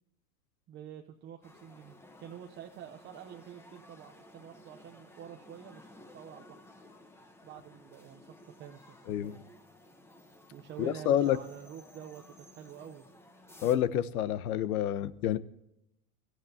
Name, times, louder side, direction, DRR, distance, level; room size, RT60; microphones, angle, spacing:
voice 1, 0.7-6.6 7.4-9.4 10.5-13.1, right 9 dB, 25° right, 3 dB, 0.8 m, -48 dB
sound 1, 1.4-13.8, left 1 dB, 5° left, 1.0 m, -56 dB
voice 2, 10.8-11.4 13.6-15.4, left 11 dB, 75° left, 15 dB, 1.1 m, -28 dB
24.0 x 13.5 x 2.8 m, 0.82 s
supercardioid pair, 150°, 44 cm